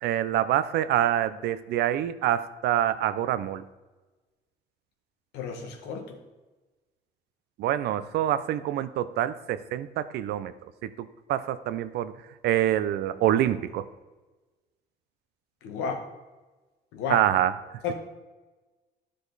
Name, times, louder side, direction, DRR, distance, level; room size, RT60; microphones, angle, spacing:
voice 1, 0.0-3.6 7.6-10.5 10.8-12.1 12.4-13.9 17.1-17.5, right 12 dB, 75° right, 13 dB, 0.6 m, -26 dB
voice 2, 5.3-6.1 15.6-16.0 16.9-17.2 17.8-17.9, left 5 dB, 90° left, 3 dB, 1.5 m, -32 dB
12.5 x 5.0 x 4.1 m, 1.2 s
cardioid pair, 110°, 17 cm